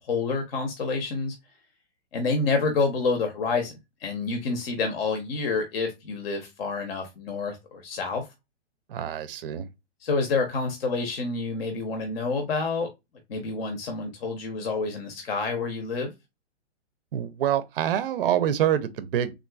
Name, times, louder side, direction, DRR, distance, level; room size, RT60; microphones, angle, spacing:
voice 1, 0.0-1.3 2.1-8.2 10.0-12.9 13.3-16.1, left 4 dB, 55° left, 0.8 m, -28 dB
voice 2, 8.9-9.7 17.1-19.3, right 10 dB, 50° right, 0.5 m, -26 dB
3.6 x 2.4 x 2.2 m
hypercardioid pair, 160°, 36 cm